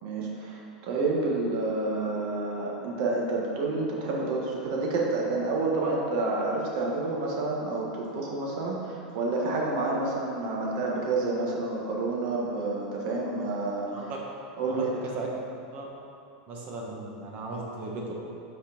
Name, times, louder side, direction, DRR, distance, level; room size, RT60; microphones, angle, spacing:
voice 1, 0.0-14.1 14.6-14.9, right 3 dB, 55° right, -2 dB, 1.4 m, -29 dB
voice 2, 13.9-14.2 14.7-15.3 15.7-15.9 16.5-18.1, right 3 dB, 40° right, -2 dB, 1.2 m, -37 dB
5.9 x 4.2 x 5.1 m, 2.7 s
supercardioid pair, 135°, 4 cm